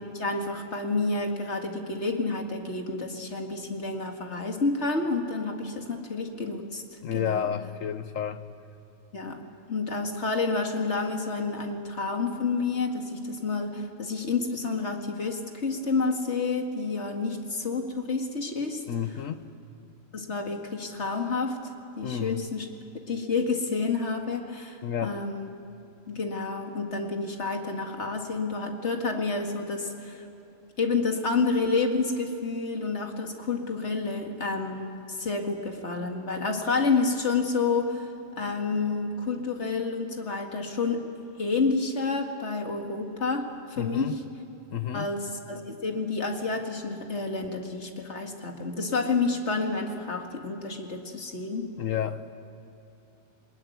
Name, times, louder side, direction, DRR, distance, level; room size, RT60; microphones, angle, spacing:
voice 1, 0.1-6.8 7.1-7.5 9.1-9.4 9.7-18.8 20.1-21.6 22.0-22.7 23.1-25.5 26.1-30.2 30.8-38.1 38.4-41.0 41.4-44.2 44.9-51.7, left 4 dB, 60° left, 3 dB, 2.3 m, -29 dB
voice 2, 7.0-8.4 18.9-19.4 22.0-22.4 24.8-25.2 43.8-44.2 44.7-45.1 51.8-52.2, left 9 dB, 85° left, 11 dB, 1.4 m, -30 dB
22.0 x 20.5 x 9.4 m, 2.9 s
omnidirectional pair, 1.3 m